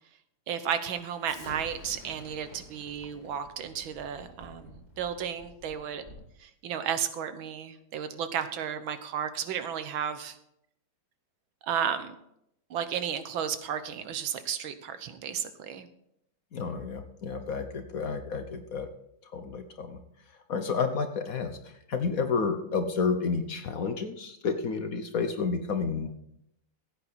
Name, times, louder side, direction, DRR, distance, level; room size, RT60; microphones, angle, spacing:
voice 1, 0.5-6.0 6.4-10.4 11.6-12.2 12.7-15.9, right 8 dB, 80° right, 10 dB, 1.7 m, -33 dB
Explosion, 1.2-6.3, left 1 dB, 35° left, 6.6 m, -49 dB
voice 2, 16.5-18.9 19.2-20.0 20.5-26.1, left 5 dB, 55° left, 7 dB, 1.1 m, -30 dB
15.5 x 8.6 x 4.1 m, 0.77 s
omnidirectional pair, 2.2 m